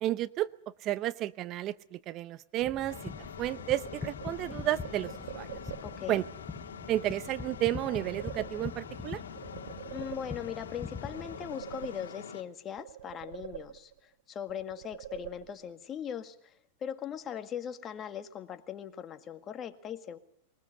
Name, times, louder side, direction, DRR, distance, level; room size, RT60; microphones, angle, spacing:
voice 1, 0.0-0.5 0.8-3.1 3.4-5.6 6.1-6.2 6.9-9.2, right 14 dB, 40° right, 16 dB, 0.8 m, -32 dB
sound 1, 2.6-11.5, left 5 dB, 15° left, 1.0 m, -44 dB
sound 2, 2.9-12.4, left 7 dB, 90° left, 1.9 m, -45 dB
sound 3, 4.2-6.2 7.6-9.0 9.3-10.7 11.1-12.4 12.8-14.1 14.5-15.9, right 12 dB, 70° right, 0.8 m, -45 dB
voice 2, 5.8-6.2 9.9-16.5 16.8-20.2, left 9 dB, 30° left, 9 dB, 1.8 m, -40 dB
22.5 x 20.5 x 6.7 m, 0.75 s
hypercardioid pair, 120°, 0 cm